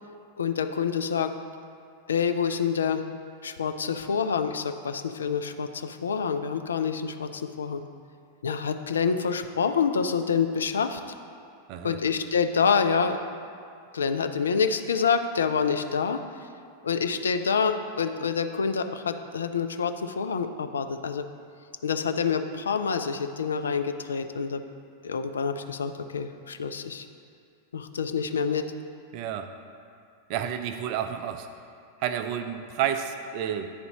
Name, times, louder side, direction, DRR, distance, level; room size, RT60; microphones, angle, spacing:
voice 1, 0.4-1.3 2.1-3.0 3.4-7.8 8.4-11.0 11.8-13.2 13.9-16.2 16.8-21.2 21.8-24.6 25.0-27.1 27.7-28.7, left 6 dB, 70° left, 8 dB, 0.3 m, -27 dB
voice 2, 29.1-29.5 30.3-31.5 32.0-33.7, right 9 dB, 45° right, 8 dB, 0.4 m, -30 dB
10.0 x 4.0 x 2.8 m, 2.3 s
figure-of-eight pair, 90°, 0 cm